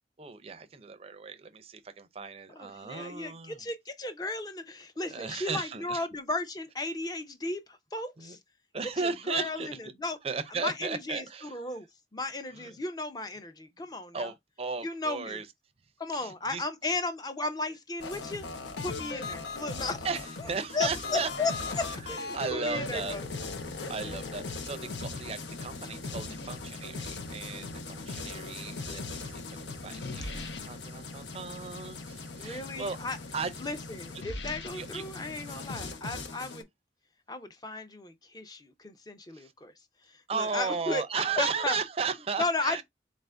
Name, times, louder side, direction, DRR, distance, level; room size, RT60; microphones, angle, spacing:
voice 1, 0.2-3.6 5.0-6.0 8.2-8.4 8.7-9.8 10.2-11.6 12.5-12.7 14.1-15.5 16.1-16.9 20.0-21.3 22.3-23.2 23.9-33.0 33.3-33.5 34.7-35.0 35.5-35.9 39.3-39.5 40.3-42.8, right 5 dB, 35° right, 0.5 m, -35 dB
voice 2, 2.5-8.4 9.0-10.2 10.5-11.9 12.1-14.3 14.8-15.4 16.0-18.5 18.8-20.1 20.4-20.5 20.7-23.3 29.1-29.3 32.4-33.2 33.6-36.7 37.3-39.7 40.1-41.0 41.4-41.8 42.4-42.8, left 2 dB, 20° left, 0.5 m, -35 dB
sound 1, 18.0-36.6, left 3 dB, 85° left, 0.7 m, -39 dB
4.1 x 2.5 x 3.3 m
head